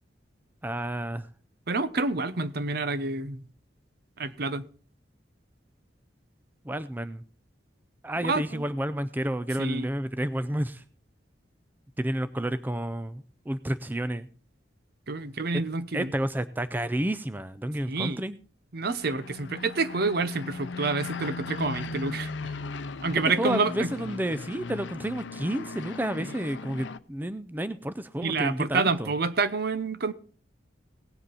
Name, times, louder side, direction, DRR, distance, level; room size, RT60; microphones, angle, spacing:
voice 1, 0.6-1.3 6.6-7.2 8.0-10.8 12.0-14.3 15.9-18.4 23.4-29.1, right 1 dB, 10° right, 0.4 m, -30 dB
voice 2, 1.7-3.4 4.2-4.7 8.2-8.6 9.6-9.9 15.1-16.1 17.9-18.2 18.7-22.5 23.0-23.9 28.2-30.1, right 3 dB, 55° right, 0.8 m, -28 dB
sound 1, 18.8-27.0, left 3 dB, 75° left, 0.6 m, -38 dB
18.0 x 7.8 x 4.1 m
head